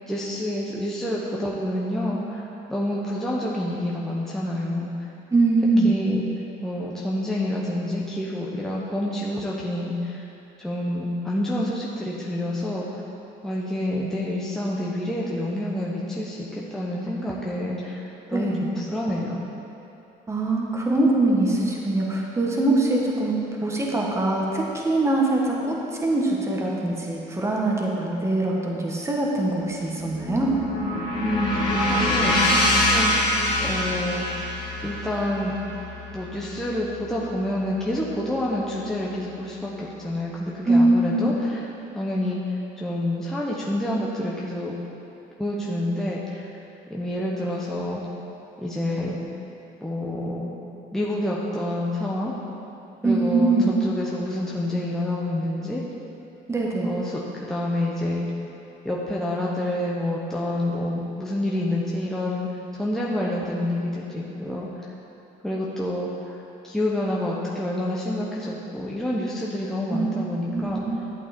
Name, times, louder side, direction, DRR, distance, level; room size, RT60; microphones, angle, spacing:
voice 1, 0.1-4.9 5.8-6.2 6.6-10.2 10.6-13.0 13.4-18.0 18.3-19.4 31.2-33.2 33.6-34.3 34.8-35.5 36.1-41.7 41.9-42.4 42.8-44.7 45.4-46.5 46.9-48.0 48.6-49.2 49.8-50.5 50.9-52.3 53.0-55.8 56.8-58.3 58.8-62.5 62.7-64.7 65.4-66.3 66.6-70.8, left 1 dB, 5° left, -5 dB, 1.0 m, -28 dB
voice 2, 5.3-5.9 18.3-18.6 20.3-30.5 40.6-41.3 53.0-53.7 56.5-57.0 69.9-70.1 70.5-70.9, right 2 dB, 15° right, -2 dB, 1.7 m, -22 dB
sound 1, 29.6-37.9, left 1 dB, 30° left, 2.2 m, -25 dB
11.5 x 8.1 x 4.4 m, 2.8 s
cardioid pair, 110°, 17 cm